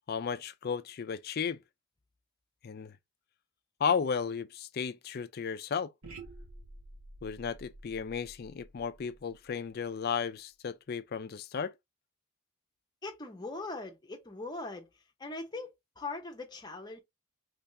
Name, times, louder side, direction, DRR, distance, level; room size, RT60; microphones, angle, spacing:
voice 1, 0.1-1.6 2.6-2.9 3.8-5.9 7.2-11.7, left 6 dB, 45° left, 0.4 m, -34 dB
sound 1, 6.0-10.1, right 2 dB, 80° right, 1.3 m, -51 dB
voice 2, 13.0-14.9 15.2-17.0, left 3 dB, 20° left, 0.7 m, -40 dB
3.4 x 3.2 x 2.6 m
head